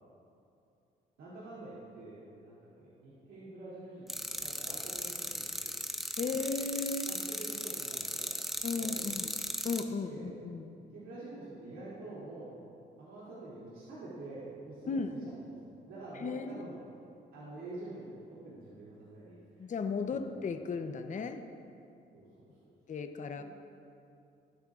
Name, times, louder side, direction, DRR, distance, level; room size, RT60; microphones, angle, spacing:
voice 1, 1.2-5.8 6.2-6.3 7.1-8.3 8.7-9.3 10.0-10.3 10.8-12.6 13.0-16.8 17.3-19.7 20.1-20.3 22.1-22.5 23.4-23.5, right 2 dB, 85° right, -10 dB, 2.8 m, -47 dB
sound 1, 4.1-9.8, equal, ahead, 0.8 m, -37 dB
voice 2, 6.2-7.1 8.6-9.3 9.6-10.8 14.9-15.1 16.2-16.5 19.6-21.4 22.9-23.4, left 4 dB, 40° left, 7 dB, 0.7 m, -35 dB
23.0 x 8.7 x 2.5 m, 2.6 s
cardioid pair, 90°, 20 cm